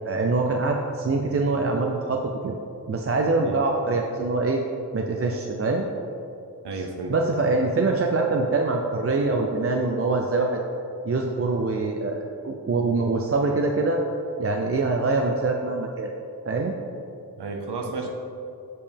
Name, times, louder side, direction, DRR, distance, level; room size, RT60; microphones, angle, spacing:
voice 1, 0.0-2.6 2.9-4.6 4.9-5.9 6.7-10.6 11.0-14.0 14.4-16.1 16.5-16.7, right 3 dB, 35° right, 2 dB, 0.5 m, -24 dB
voice 2, 6.6-7.2 17.4-18.1, right 3 dB, 80° right, 2 dB, 0.8 m, -32 dB
6.8 x 5.3 x 3.4 m, 2.6 s
cardioid pair, 40°, 39 cm